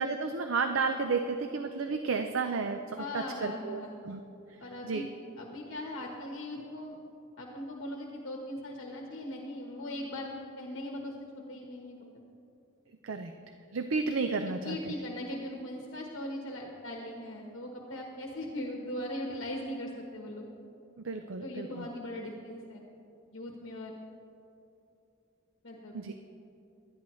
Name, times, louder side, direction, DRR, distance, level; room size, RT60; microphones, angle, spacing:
voice 1, 0.0-4.2 4.5-5.1 13.0-13.3 13.7-14.8 21.0-21.9 25.9-26.1, right 4 dB, 70° right, 6 dB, 0.6 m, -32 dB
voice 2, 3.0-3.9 4.6-5.1 5.4-7.0 7.4-12.0 14.5-20.5 21.4-22.8 23.3-23.9 25.6-25.9, left 1 dB, 65° left, 0 dB, 1.2 m, -39 dB
19.0 x 12.0 x 3.1 m, 2.8 s
head